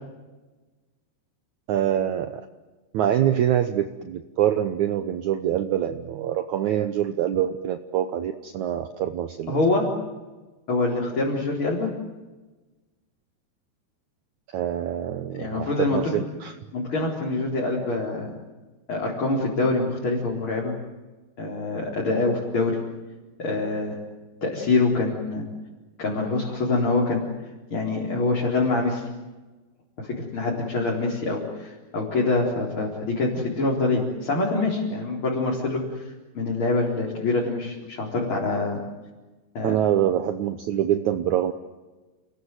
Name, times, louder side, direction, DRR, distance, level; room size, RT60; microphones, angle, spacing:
voice 1, 1.7-2.4 2.9-9.5 14.5-16.5 39.6-41.5, right 10 dB, 75° right, 9 dB, 1.7 m, -25 dB
voice 2, 9.5-9.9 10.7-11.9 15.4-16.1 16.7-18.3 18.9-20.7 21.4-22.8 23.4-24.0 24.4-25.4 26.0-27.2 27.7-29.1 30.0-38.8 39.5-39.8, left 3 dB, 30° left, -3 dB, 4.7 m, -25 dB
29.5 x 21.0 x 9.4 m, 1.2 s
omnidirectional pair, 4.8 m